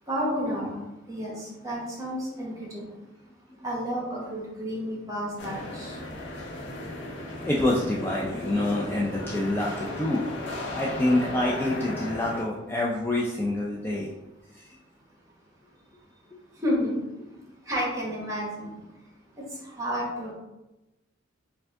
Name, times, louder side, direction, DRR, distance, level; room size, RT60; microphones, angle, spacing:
voice 1, 0.1-0.8 1.1-2.8 3.6-6.0 16.6-17.0 17.3-17.4 17.7-18.7 19.4-20.3, equal, 15° right, -4 dB, 1.2 m, -31 dB
sound 1, 5.4-12.4, left 1 dB, 60° left, 0.8 m, -36 dB
voice 2, 7.5-10.2 10.7-14.1 14.6-14.7, left 1 dB, 10° left, -4 dB, 0.4 m, -26 dB
4.5 x 2.6 x 3.5 m, 1.0 s
head